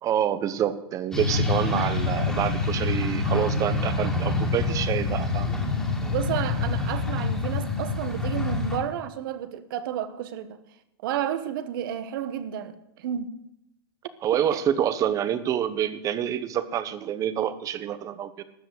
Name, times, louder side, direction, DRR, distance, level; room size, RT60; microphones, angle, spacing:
voice 1, 0.0-5.6 14.2-18.4, right 10 dB, 25° right, 1.1 m, -27 dB
sound 1, 1.1-8.8, left 3 dB, 5° left, 2.6 m, -26 dB
voice 2, 6.0-10.6 11.0-13.4 14.5-14.6, right 10 dB, 55° right, 1.3 m, -31 dB
13.0 x 7.9 x 9.6 m
hypercardioid pair, 140°, 13 cm